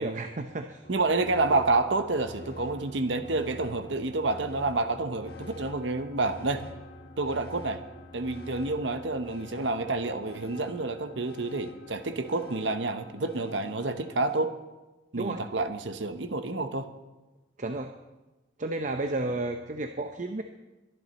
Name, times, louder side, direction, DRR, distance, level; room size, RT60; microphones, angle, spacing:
voice 1, 0.0-0.8 15.1-15.4 17.6-17.9 18.6-20.4, right 2 dB, 40° right, 6 dB, 0.6 m, -32 dB
sound 1, 0.8-14.4, left 2 dB, 55° left, 1.4 m, -46 dB
voice 2, 0.9-6.7 7.2-7.8 8.1-14.5 15.1-16.9, right 3 dB, 70° right, 9 dB, 0.9 m, -29 dB
23.5 x 10.5 x 4.2 m, 1.1 s
head